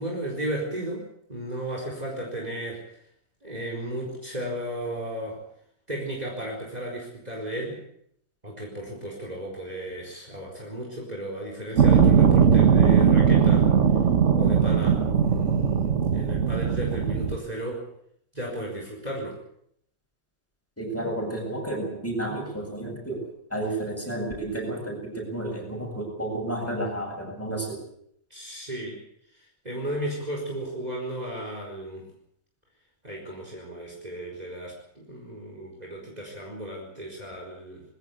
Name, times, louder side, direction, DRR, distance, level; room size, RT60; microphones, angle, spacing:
voice 1, 0.0-2.8 3.4-5.4 5.9-7.8 8.4-13.7 14.3-17.9 18.3-19.4 28.3-29.0 29.3-32.1 33.0-37.8, right 1 dB, 30° right, -1 dB, 4.5 m, -34 dB
sound 1, 11.8-17.4, right 7 dB, 60° right, 1.6 m, -19 dB
voice 2, 20.8-23.2 23.5-27.8, right 1 dB, 10° left, 0 dB, 7.9 m, -31 dB
21.5 x 17.5 x 8.5 m, 0.71 s
omnidirectional pair, 1.5 m